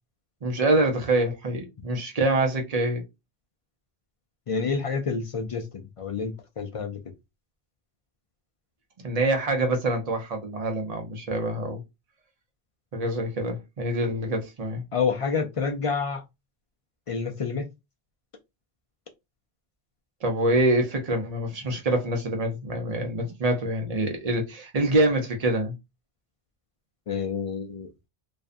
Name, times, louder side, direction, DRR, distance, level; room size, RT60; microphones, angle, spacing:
voice 1, 0.4-3.0 9.0-11.8 12.9-14.8 20.2-25.7, right 1 dB, 45° right, 0.7 m, -25 dB
voice 2, 4.5-7.0 14.9-16.2 17.1-17.7 27.1-27.9, left 5 dB, 55° left, 0.3 m, -28 dB
2.5 x 2.3 x 2.4 m
omnidirectional pair, 1.0 m